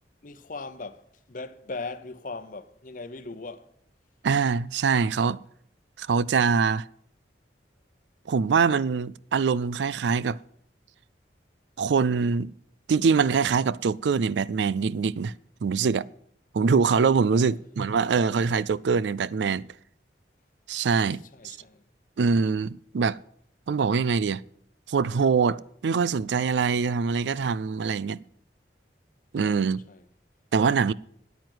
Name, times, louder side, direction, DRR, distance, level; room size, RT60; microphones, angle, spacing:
voice 1, 0.2-3.7 17.3-17.6 21.3-21.8 29.4-30.1, left 3 dB, 50° left, 0.8 m, -39 dB
voice 2, 4.2-5.4 6.0-6.9 8.3-10.4 11.8-12.5 12.9-15.3 15.6-16.1 16.5-19.7 20.7-21.6 22.2-23.2 23.7-24.4 24.9-28.2 29.3-29.8 30.5-30.9, right 5 dB, 85° right, 0.4 m, -24 dB
9.3 x 9.1 x 7.9 m
head